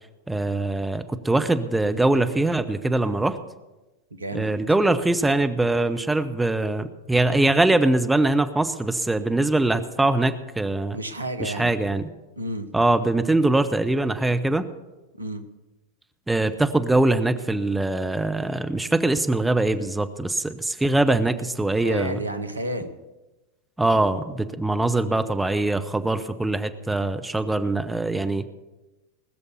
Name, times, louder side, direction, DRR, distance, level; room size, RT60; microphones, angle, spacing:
voice 1, 0.3-3.4 4.3-11.0 11.4-12.1 12.7-14.7 16.3-22.2 23.8-28.4, right 2 dB, 5° right, 9 dB, 0.7 m, -22 dB
voice 2, 4.1-4.5 10.9-11.8 12.4-12.7 15.2-15.4 21.8-23.0, right 1 dB, 80° right, 9 dB, 1.0 m, -31 dB
20.0 x 6.8 x 7.0 m, 1.1 s
figure-of-eight pair, 90°, 0 cm